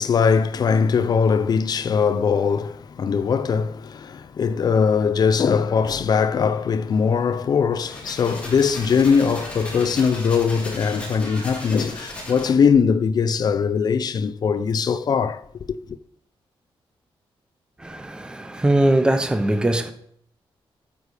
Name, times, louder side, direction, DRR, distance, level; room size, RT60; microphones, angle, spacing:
voice 1, 0.0-16.0, left 6 dB, 45° left, 0.5 m, -21 dB
sound 1, 7.7-12.7, left 1 dB, 15° left, 3.5 m, -36 dB
voice 2, 17.8-19.9, right 1 dB, 10° right, 0.7 m, -21 dB
13.0 x 8.4 x 4.9 m
wide cardioid pair, 175°, 9 cm